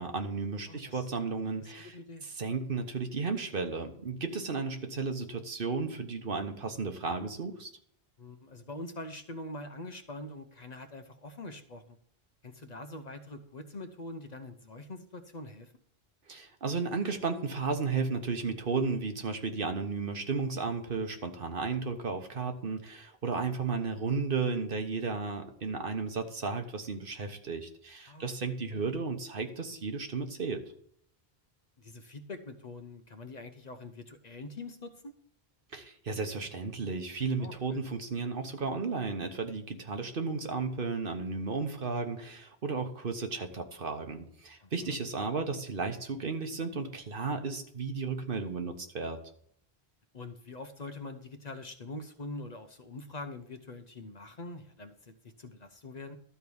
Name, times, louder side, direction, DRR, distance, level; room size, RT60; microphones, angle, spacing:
voice 1, 0.0-1.9 2.2-7.7 16.3-30.6 35.7-49.2, right 4 dB, 60° right, 5 dB, 1.3 m, -34 dB
voice 2, 0.7-1.1 1.6-2.2 8.2-12.0 12.4-15.7 28.1-28.3 28.7-28.8 31.8-35.1 37.4-37.8 44.6-45.0 50.1-56.2, left 2 dB, 45° left, 7 dB, 0.8 m, -44 dB
12.5 x 4.7 x 7.0 m, 0.64 s
omnidirectional pair, 1.1 m